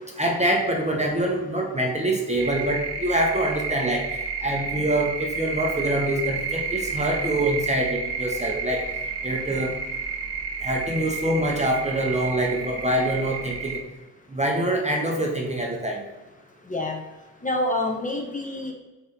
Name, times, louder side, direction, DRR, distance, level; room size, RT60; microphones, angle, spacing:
voice 1, 0.2-8.8 9.2-9.7 10.6-13.8 14.3-16.0, right 1 dB, 15° right, 0 dB, 0.7 m, -25 dB
sound 1, 2.4-13.8, right 5 dB, 55° right, 1.0 m, -31 dB
voice 2, 16.7-17.0 17.4-18.7, left 1 dB, 15° left, 0 dB, 0.8 m, -27 dB
4.1 x 2.6 x 3.7 m, 1.1 s
hypercardioid pair, 45°, 47 cm